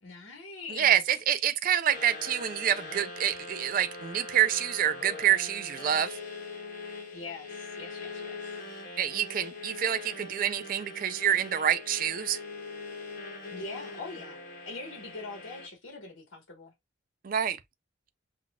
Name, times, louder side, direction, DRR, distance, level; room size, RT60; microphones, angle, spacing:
voice 1, 0.0-1.0 7.1-8.5 13.5-14.4 14.6-16.7, left 3 dB, 70° left, 1.3 m, -42 dB
voice 2, 0.7-6.2 9.0-12.4 17.2-17.6, right 10 dB, 45° right, 0.4 m, -27 dB
sound 1, 1.9-15.7, left 3 dB, 50° left, 1.9 m, -42 dB
5.7 x 2.4 x 2.3 m
head